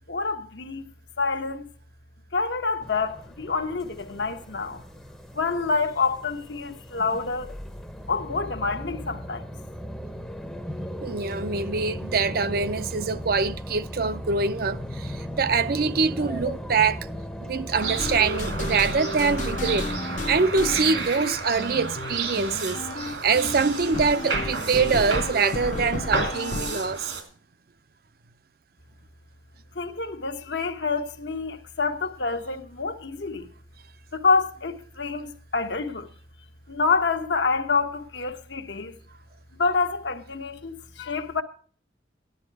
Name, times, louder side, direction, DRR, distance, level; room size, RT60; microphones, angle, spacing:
voice 1, 0.1-0.9 1.2-1.7 2.3-4.8 5.3-7.5 8.1-9.5 11.3-11.4 29.7-33.5 34.1-36.1 36.7-39.0 39.6-41.4, left 4 dB, 75° left, 1.3 m, -27 dB
sound 1, 2.8-21.2, equal, 5° left, 0.7 m, -37 dB
voice 2, 11.0-17.1 17.4-19.9 20.3-27.0, right 5 dB, 55° right, 0.6 m, -24 dB
sound 2, 17.7-27.2, right 4 dB, 85° right, 2.9 m, -32 dB
sound 3, 17.8-26.8, left 2 dB, 45° left, 0.8 m, -33 dB
14.0 x 10.5 x 4.7 m
head